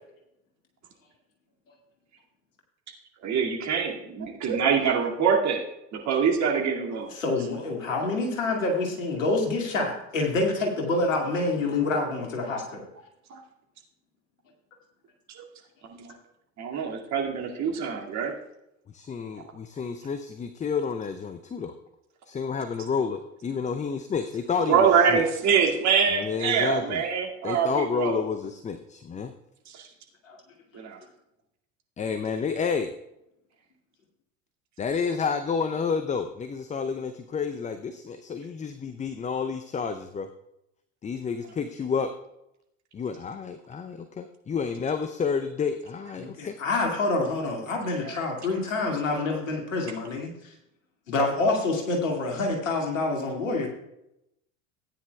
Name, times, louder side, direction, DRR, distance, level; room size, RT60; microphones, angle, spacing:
voice 1, 3.2-5.6 5.9-7.1 13.3-13.4 15.4-15.5 15.9-16.1 16.6-18.3 24.7-28.2 29.7-29.9 30.7-31.0 49.2-49.3, right 6 dB, 45° right, 0 dB, 2.3 m, -24 dB
voice 2, 7.1-12.8 30.2-30.4 46.2-50.5 51.1-53.7, left 2 dB, 80° left, 0 dB, 2.3 m, -27 dB
voice 3, 18.9-21.7 22.3-25.2 26.1-27.0 27.4-29.3 32.0-32.9 34.8-40.3 41.0-42.1 42.9-46.6, left 5 dB, 20° left, 9 dB, 0.6 m, -30 dB
16.5 x 9.5 x 2.3 m, 0.85 s
figure-of-eight pair, 70°, 38 cm